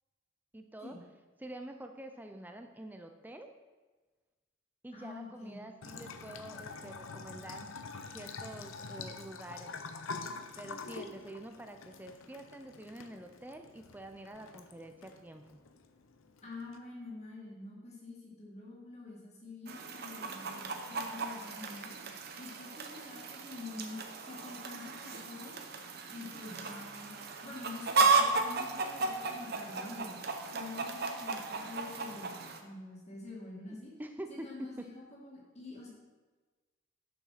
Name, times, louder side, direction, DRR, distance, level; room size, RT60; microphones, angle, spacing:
voice 1, 0.5-1.0 1.4-3.5 4.8-7.7 8.1-9.7 10.6-15.6 33.7-34.9, right 1 dB, 10° right, 5 dB, 0.4 m, -47 dB
voice 2, 4.9-5.6 16.4-21.9 22.4-25.6 26.1-27.1 27.4-30.2 30.5-33.9 34.3-35.9, left 3 dB, 35° left, -4 dB, 2.2 m, -47 dB
Bathtub (filling or washing) / Trickle dribble, 5.8-16.8, left 4 dB, 90° left, 0.7 m, -46 dB
Chicken rooster, 19.7-32.6, right 4 dB, 50° right, 0.8 m, -34 dB
7.1 x 6.0 x 5.8 m, 1.3 s
head